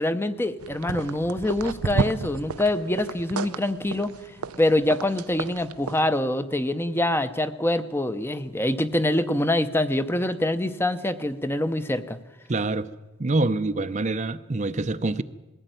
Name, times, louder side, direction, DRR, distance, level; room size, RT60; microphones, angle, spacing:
voice 1, 0.0-4.1 4.6-12.2, left 1 dB, 10° left, 11 dB, 0.7 m, -25 dB
sound 1, 0.6-6.0, right 4 dB, 90° right, 0.7 m, -32 dB
voice 2, 12.5-12.9 13.2-15.2, right 2 dB, 35° right, 11 dB, 0.6 m, -25 dB
20.5 x 15.5 x 9.1 m, 1.1 s
head